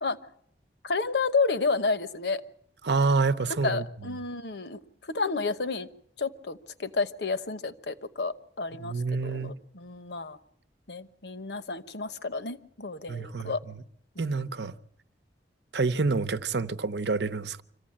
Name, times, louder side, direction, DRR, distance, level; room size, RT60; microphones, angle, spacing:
voice 1, 0.8-2.4 3.5-4.8 5.1-5.9 6.2-10.4 10.9-13.6 14.2-14.4, left 4 dB, 70° left, 1.1 m, -31 dB
voice 2, 2.8-3.8 8.8-9.5 13.1-13.5 14.2-14.7 15.7-17.6, right 4 dB, 70° right, 0.8 m, -27 dB
25.5 x 15.5 x 8.7 m
head